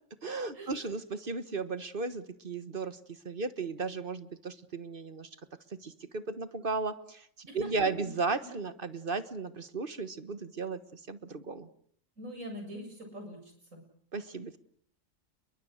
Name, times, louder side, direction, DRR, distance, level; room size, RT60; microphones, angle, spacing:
voice 1, 0.2-5.3 5.8-11.7 14.1-14.6, right 4 dB, 45° right, 12 dB, 1.4 m, -35 dB
voice 2, 12.2-13.8, equal, 80° right, 4 dB, 7.8 m, -43 dB
30.0 x 22.5 x 6.4 m, 0.63 s
omnidirectional pair, 1.4 m